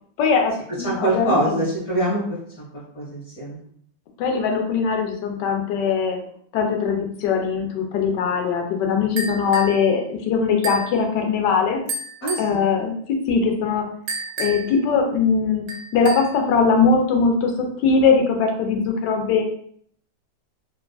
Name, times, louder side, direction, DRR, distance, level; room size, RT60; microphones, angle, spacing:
voice 1, 0.2-1.6 4.2-6.2 6.5-11.8 12.4-13.8 14.4-15.7 15.9-19.4, left 5 dB, 80° left, 3 dB, 1.2 m, -21 dB
voice 2, 0.8-2.2 2.6-2.7 2.9-3.6 12.2-12.6, right 1 dB, 55° left, -8 dB, 1.4 m, -23 dB
sound 1, 9.2-9.8 10.6-11.0 11.9-12.5 14.1-14.8 15.7-16.4, right 2 dB, 70° right, 1.0 m, -30 dB
3.5 x 2.3 x 2.2 m, 0.63 s
omnidirectional pair, 1.9 m